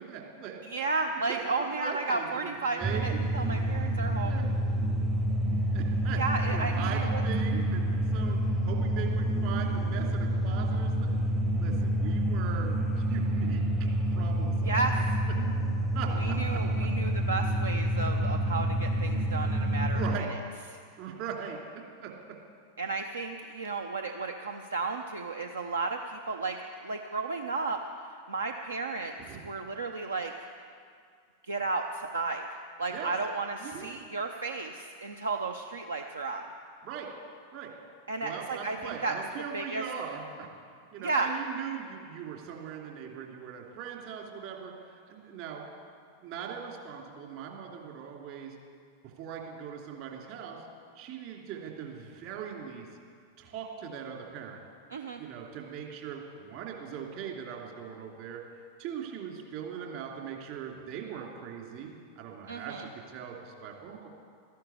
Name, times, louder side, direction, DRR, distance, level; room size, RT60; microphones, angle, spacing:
voice 1, 0.0-0.6 1.3-3.2 4.2-4.5 5.7-11.2 11.6-14.8 15.9-16.9 19.9-20.3 21.0-21.6 22.0-22.1 29.3-29.4 32.9-33.1 33.6-33.9 36.8-37.1 37.5-37.7 38.2-40.5 40.9-45.6 46.2-48.5 49.2-50.6 50.9-52.9 53.4-54.6 55.2-58.4 58.8-64.1, right 7 dB, 45° right, 0 dB, 2.8 m, -40 dB
voice 2, 0.6-4.4 6.2-7.2 14.6-15.0 16.2-20.0 20.3-20.4 20.7-20.8 22.8-26.6 26.8-27.8 28.3-30.3 31.5-32.5 32.8-36.4 38.1-39.2 39.5-39.8 41.0-41.3 54.9-55.2 62.5-62.9, right 3 dB, 70° right, 5 dB, 0.7 m, -33 dB
sound 1, 2.8-20.2, right 1 dB, 20° right, 0.8 m, -28 dB
13.5 x 11.5 x 8.4 m, 2.2 s
figure-of-eight pair, 90°, 0 cm